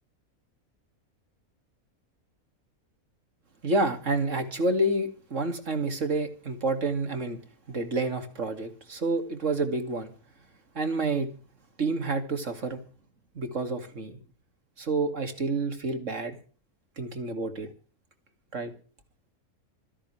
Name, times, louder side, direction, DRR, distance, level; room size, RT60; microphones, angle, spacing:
voice 1, 3.6-7.4 7.7-10.1 10.7-11.3 11.8-12.8 13.4-14.2 14.8-16.4 17.0-17.7 18.5-18.7, right 2 dB, 55° right, 2.7 m, -29 dB
26.5 x 10.0 x 3.3 m
omnidirectional pair, 1.5 m